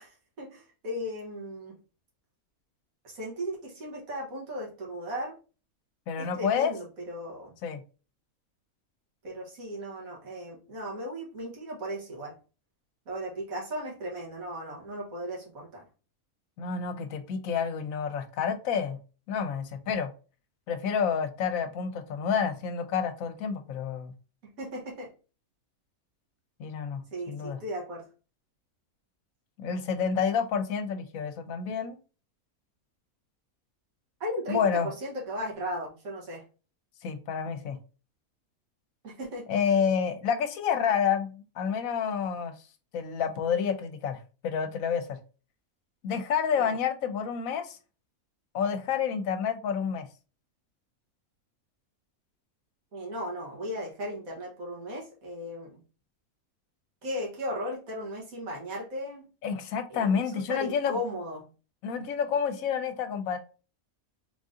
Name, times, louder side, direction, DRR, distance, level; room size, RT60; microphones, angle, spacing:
voice 1, 0.0-1.8 3.0-5.3 6.2-7.5 9.2-12.4 13.1-15.8 24.6-25.1 27.1-28.0 34.2-36.4 39.0-39.4 46.7-46.8 52.9-55.7 57.0-59.2 59.9-60.2 60.5-61.4, equal, 70° right, 1.7 m, -36 dB
voice 2, 6.1-6.7 7.6-7.8 16.6-19.0 19.3-20.1 20.7-24.1 26.6-27.0 27.3-27.6 29.6-32.0 34.5-34.9 37.0-37.8 39.5-42.5 42.9-45.2 46.0-47.8 48.5-50.1 59.4-61.0 61.8-63.4, left 7 dB, 75° left, 1.0 m, -29 dB
3.8 x 2.6 x 3.6 m
omnidirectional pair, 1.5 m